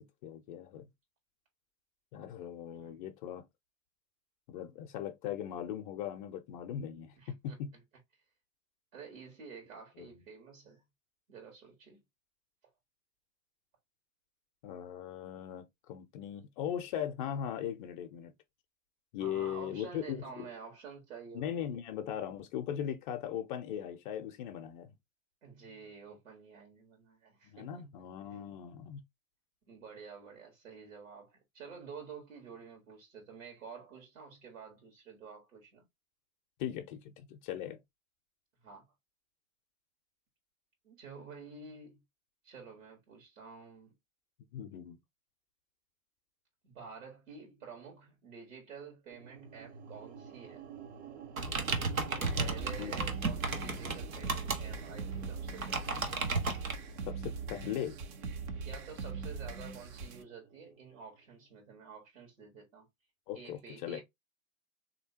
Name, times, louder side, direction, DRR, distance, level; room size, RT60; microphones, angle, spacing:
voice 1, 0.2-0.9 2.1-3.4 4.5-7.7 10.0-10.1 14.6-18.3 19.1-20.5 21.3-24.9 27.4-29.0 36.6-37.8 44.5-45.0 52.0-52.5 52.8-52.9 57.1-58.0 63.3-64.0, left 10 dB, 40° left, 0.5 m, -39 dB
voice 2, 7.2-7.6 8.9-10.8 11.3-12.0 19.2-21.7 25.4-27.9 29.7-35.9 38.6-38.8 40.8-42.0 42.4-43.9 46.6-50.6 52.1-56.0 58.6-62.9 63.3-64.0, right 5 dB, 70° right, 1.5 m, -50 dB
sound 1, 49.1-61.4, right 7 dB, 55° right, 0.8 m, -51 dB
sound 2, 51.4-56.7, right 3 dB, 85° right, 0.9 m, -34 dB
sound 3, 52.2-60.2, right 4 dB, 25° right, 0.3 m, -41 dB
3.4 x 2.8 x 2.7 m
figure-of-eight pair, 100°, 40 cm